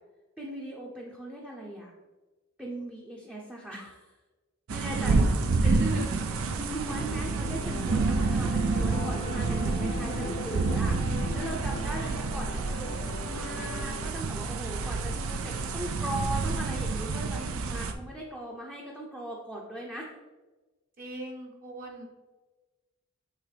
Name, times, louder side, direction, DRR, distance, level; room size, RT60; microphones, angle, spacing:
voice 1, 0.4-1.9 2.6-4.1 4.7-5.3 5.6-5.8 6.5-12.9 13.3-20.1, right 1 dB, 5° right, -3 dB, 0.6 m, -39 dB
sound 1, 4.7-17.9, right 3 dB, 85° right, 0.5 m, -29 dB
voice 2, 4.8-6.2 8.3-8.9 12.0-12.7 21.0-22.1, right 1 dB, 40° right, 0 dB, 0.9 m, -41 dB
sound 2, 6.9-14.0, left 2 dB, 30° left, 0.6 m, -39 dB
8.2 x 3.6 x 3.3 m, 1.2 s
head